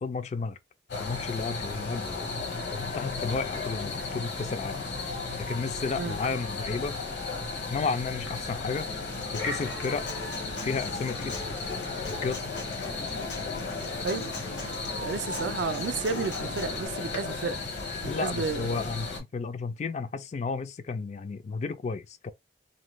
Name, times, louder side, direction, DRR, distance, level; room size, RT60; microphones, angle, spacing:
voice 1, 0.0-0.6 1.0-2.2 2.7-4.8 5.4-7.0 7.7-8.9 9.3-10.1 10.6-11.4 12.1-12.6 18.0-22.3, left 4 dB, 40° left, 0.3 m, -32 dB
sound 1, 0.9-19.2, left 3 dB, 65° left, 0.9 m, -35 dB
Human voice / Acoustic guitar, 8.9-16.9, left 1 dB, 85° left, 1.1 m, -41 dB
voice 2, 15.0-17.6 18.0-18.8, right 5 dB, 70° right, 0.4 m, -32 dB
2.6 x 2.2 x 3.1 m
head